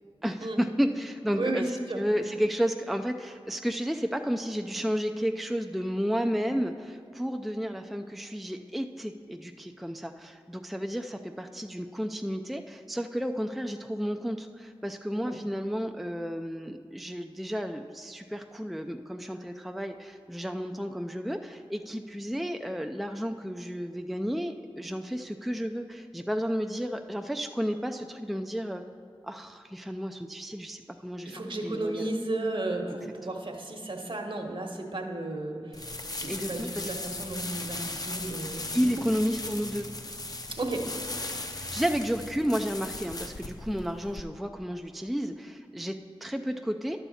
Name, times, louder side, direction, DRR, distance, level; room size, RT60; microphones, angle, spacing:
voice 1, 0.2-28.8 29.2-32.1 32.9-33.1 36.3-36.9 38.7-39.9 41.6-47.0, equal, ahead, 6 dB, 0.4 m, -32 dB
voice 2, 31.3-38.8 40.6-40.9, right 2 dB, 55° right, 3 dB, 1.1 m, -34 dB
sound 1, 35.7-44.2, left 2 dB, 40° left, 0.7 m, -38 dB
11.0 x 7.0 x 4.2 m, 2.2 s
cardioid pair, 40°, 10 cm